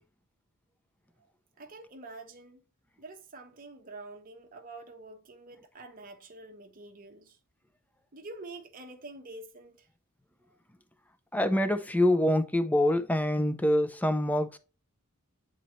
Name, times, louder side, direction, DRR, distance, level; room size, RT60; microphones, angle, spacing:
voice 1, 1.6-2.6 3.0-7.4 8.1-9.9, right 2 dB, 40° right, 0.9 m, -47 dB
voice 2, 11.3-14.6, left 1 dB, 5° left, 0.6 m, -25 dB
9.1 x 4.0 x 3.1 m
head